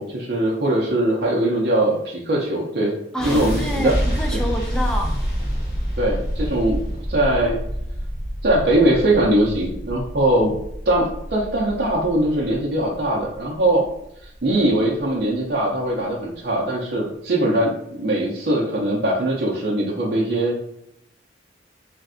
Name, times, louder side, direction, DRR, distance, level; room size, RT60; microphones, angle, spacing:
voice 1, 0.0-2.9 3.2-3.9 4.3-4.4 6.0-6.8 7.1-7.6 8.4-10.6 10.9-13.9 14.4-20.6, right 1 dB, 55° right, -4 dB, 0.5 m, -21 dB
voice 2, 3.1-5.2, equal, 5° left, 2 dB, 0.3 m, -27 dB
sound 1, 3.2-15.2, equal, 50° left, 1.2 m, -28 dB
3.1 x 2.5 x 2.5 m, 0.78 s
head